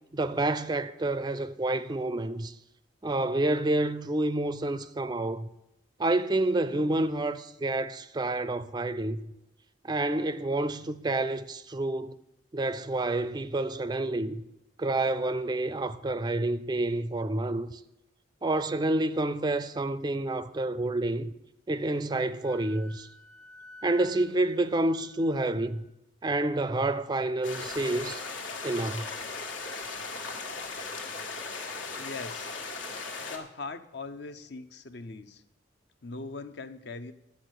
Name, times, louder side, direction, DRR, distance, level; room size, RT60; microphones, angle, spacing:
voice 1, 0.1-2.5 3.0-5.5 6.0-9.3 9.8-12.2 12.5-14.4 14.8-17.8 18.4-21.3 21.7-23.1 23.8-25.8 26.2-28.2 28.6-29.1, right 2 dB, 20° right, 0.4 m, -28 dB
Wind instrument woodwind instrument, 22.4-25.9, equal, 35° left, 1.3 m, -51 dB
sound 1, 27.4-33.4, left 4 dB, 80° left, 1.6 m, -37 dB
voice 2, 31.9-32.5 33.0-35.4 36.0-37.1, left 3 dB, 60° left, 0.7 m, -41 dB
10.5 x 8.3 x 6.4 m
head